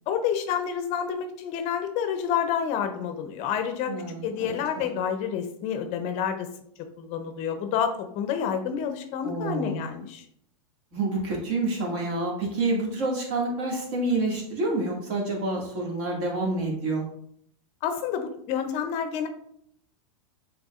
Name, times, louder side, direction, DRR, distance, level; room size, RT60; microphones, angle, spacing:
voice 1, 0.1-3.9 4.2-6.5 7.0-10.2 17.8-19.3, left 8 dB, 40° left, 7 dB, 0.6 m, -29 dB
voice 2, 3.9-4.9 9.2-9.8 10.9-17.0, right 2 dB, 50° right, -2 dB, 1.9 m, -28 dB
6.1 x 3.5 x 2.4 m, 0.69 s
supercardioid pair, 135°, 18 cm